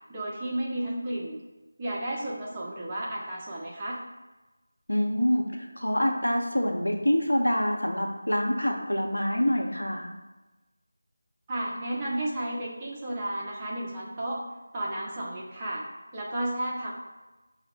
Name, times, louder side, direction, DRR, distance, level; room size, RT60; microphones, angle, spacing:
voice 1, 0.1-1.4 1.8-4.0 11.5-14.5 14.7-15.9 16.1-16.9, right 1 dB, 15° right, -5 dB, 0.5 m, -32 dB
voice 2, 4.9-10.1, equal, 85° left, 1 dB, 0.7 m, -26 dB
5.4 x 2.1 x 4.0 m, 1.1 s
figure-of-eight pair, 165°, 0 cm